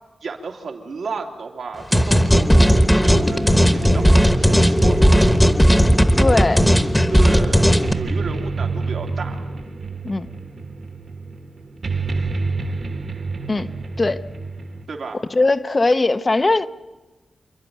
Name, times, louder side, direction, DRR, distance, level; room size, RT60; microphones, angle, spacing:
voice 1, 0.2-5.4 7.1-9.5 14.9-15.2, right 4 dB, 80° right, 1 dB, 2.6 m, -32 dB
sound 1, 1.9-7.9, equal, 5° left, 1.0 m, -15 dB
sound 2, 3.8-14.8, right 3 dB, 55° right, 1.5 m, -29 dB
voice 2, 6.1-6.7 10.0-10.3 13.5-14.2 15.3-16.7, left 3 dB, 30° left, 11 dB, 0.6 m, -20 dB
28.5 x 11.5 x 9.2 m, 1.2 s
wide cardioid pair, 145°, 0 cm